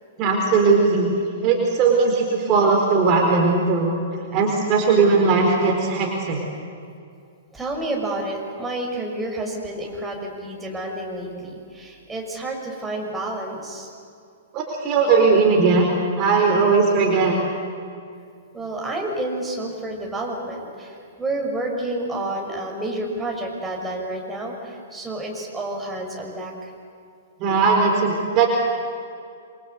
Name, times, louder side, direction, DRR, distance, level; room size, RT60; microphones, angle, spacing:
voice 1, 0.2-1.1 1.4-4.0 4.3-6.4 14.5-15.9 16.2-17.4 27.4-28.5, right 4 dB, 35° right, 0 dB, 4.4 m, -18 dB
voice 2, 7.5-13.9 18.5-26.7, right 1 dB, 10° right, -1 dB, 6.3 m, -29 dB
27.5 x 25.0 x 8.2 m, 2.4 s
figure-of-eight pair, 110°, 0 cm